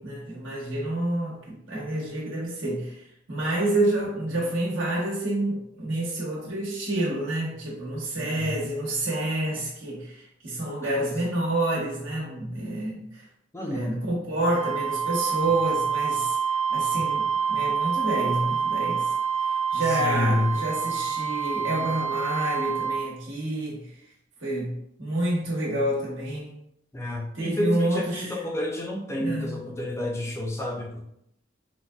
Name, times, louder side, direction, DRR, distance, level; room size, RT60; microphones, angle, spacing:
voice 1, 0.0-3.0 3.3-13.2 13.7-16.3 16.7-19.1 19.7-23.9 24.4-26.5 27.3-28.3 29.2-29.6, right 1 dB, 80° right, -4 dB, 1.1 m, -28 dB
voice 2, 8.2-8.6 13.5-13.9 20.0-20.6 26.9-31.1, left 1 dB, 15° left, 0 dB, 0.4 m, -29 dB
Wind instrument woodwind instrument, 14.5-23.0, right 6 dB, 45° right, 0.7 m, -27 dB
3.8 x 2.1 x 2.3 m, 0.75 s
head